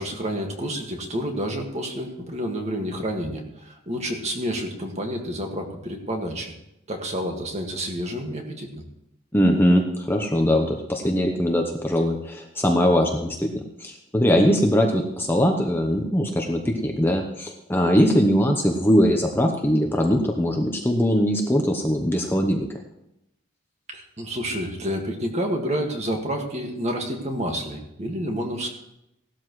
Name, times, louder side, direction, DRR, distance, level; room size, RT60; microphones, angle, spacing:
voice 1, 0.0-6.5 6.9-8.8 23.9-28.7, equal, 30° right, 2 dB, 1.9 m, -29 dB
voice 2, 9.3-13.5 13.8-22.7, equal, 10° left, 2 dB, 0.9 m, -21 dB
17.0 x 12.5 x 3.2 m, 0.84 s
head